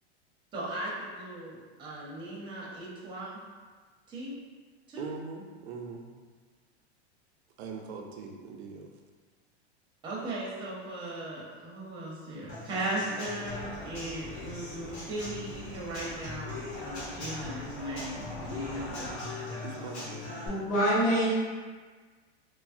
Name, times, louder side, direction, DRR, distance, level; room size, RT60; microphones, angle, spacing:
voice 1, 0.5-3.4 4.1-4.3 4.9-5.0 10.0-19.2, right 1 dB, 15° right, -5 dB, 0.6 m, -37 dB
voice 2, 5.0-6.1 7.6-8.9 19.6-20.3, right 4 dB, 75° right, 1 dB, 0.5 m, -41 dB
Human voice / Acoustic guitar / Drum, 12.5-20.5, left 2 dB, 80° left, 1.1 m, -41 dB
sound 1, 13.4-19.2, left 1 dB, 65° left, 0.8 m, -46 dB
voice 3, 20.5-21.3, equal, 50° left, -10 dB, 1.0 m, -25 dB
3.4 x 2.0 x 2.5 m, 1.5 s
supercardioid pair, 140°, 33 cm